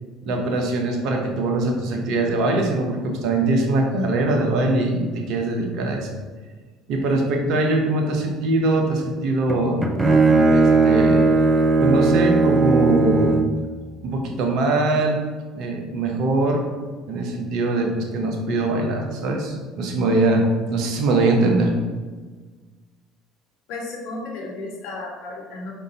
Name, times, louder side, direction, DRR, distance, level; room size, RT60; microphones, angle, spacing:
voice 1, 0.2-6.1 6.9-9.8 10.5-11.3 11.8-13.4 14.0-15.2 15.5-16.6 17.1-21.7, right 2 dB, 60° right, 2 dB, 0.9 m, -22 dB
Bowed string instrument, 9.5-13.6, right 3 dB, 20° right, 0.7 m, -17 dB
voice 2, 23.7-25.7, left 2 dB, 65° left, 0 dB, 1.0 m, -33 dB
4.9 x 3.6 x 2.9 m, 1.4 s
hypercardioid pair, 65°, 0 cm